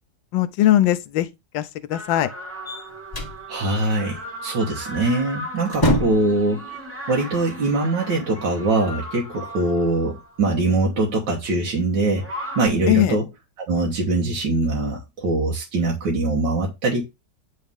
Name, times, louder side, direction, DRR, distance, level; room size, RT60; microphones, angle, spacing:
voice 1, 0.3-1.3 1.5-2.3 12.9-13.2, left 13 dB, 90° left, 1.3 m, -20 dB
sound 1, 1.9-10.6 12.1-12.7, equal, 10° right, 0.7 m, -37 dB
sound 2, 2.7-3.4 5.0-5.2 5.6-6.4, equal, 25° left, 0.5 m, -23 dB
voice 2, 3.5-6.8 7.1-13.2 13.6-17.1, right 2 dB, 80° right, 1.9 m, -23 dB
9.3 x 3.3 x 3.5 m
omnidirectional pair, 2.0 m